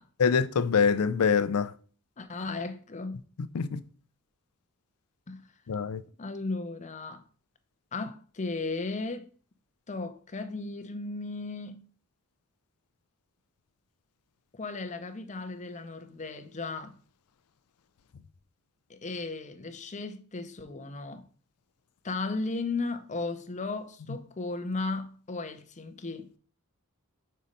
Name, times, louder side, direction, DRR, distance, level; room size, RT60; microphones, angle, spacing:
voice 1, 0.2-1.7 3.5-3.8 5.7-6.0, left 6 dB, 90° left, 0.5 m, -24 dB
voice 2, 2.2-3.2 5.3-5.5 6.2-7.2 7.9-9.3 9.9-11.9 14.5-17.0 18.9-21.3 22.0-26.3, left 3 dB, 35° left, 0.7 m, -35 dB
5.5 x 4.2 x 5.1 m
head